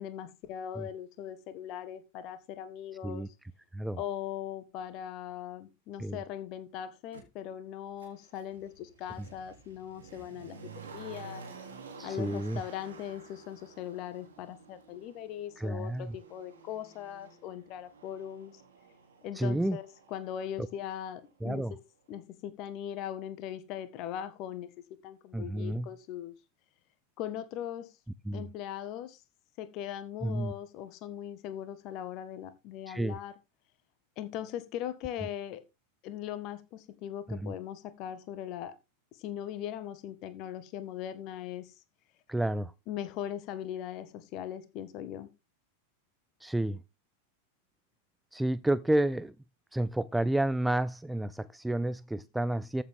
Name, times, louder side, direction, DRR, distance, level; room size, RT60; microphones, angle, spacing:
voice 1, 0.0-3.2 4.0-11.4 12.0-18.6 19.2-19.8 20.1-21.8 22.1-24.7 25.0-26.3 27.2-28.0 28.3-29.2 29.6-33.3 34.2-35.6 36.0-38.7 39.1-41.7 42.9-45.3, left 10 dB, 40° left, 1.5 m, -40 dB
Motor vehicle (road), 7.1-7.2 8.0-20.9 21.2-21.3, right 5 dB, 70° right, 3.5 m, -51 dB
voice 2, 12.0-12.6 15.6-16.2 19.3-19.8 21.4-21.7 25.3-25.9 28.3-28.4 30.2-30.5 32.9-33.2 37.3-37.5 42.3-42.7 46.4-46.8 48.3-49.3 49.7-52.8, right 1 dB, 5° right, 0.5 m, -30 dB
14.0 x 7.3 x 3.7 m
figure-of-eight pair, 90°, 0 cm